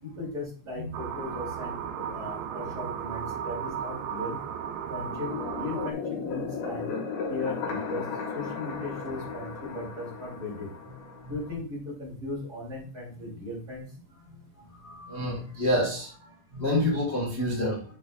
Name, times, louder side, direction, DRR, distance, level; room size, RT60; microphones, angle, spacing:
voice 1, 0.0-4.4 4.9-6.9 7.3-8.1 8.3-10.7 11.3-13.8, left 2 dB, 30° right, -4 dB, 2.8 m, -37 dB
sound 1, 0.9-5.9, right 8 dB, 85° right, 2.5 m, -35 dB
sound 2, 5.0-11.6, left 5 dB, 85° left, 3.4 m, -35 dB
voice 2, 14.8-16.2 16.5-17.8, left 1 dB, 60° left, -4 dB, 0.6 m, -28 dB
7.3 x 6.6 x 2.4 m, 0.43 s
omnidirectional pair, 4.3 m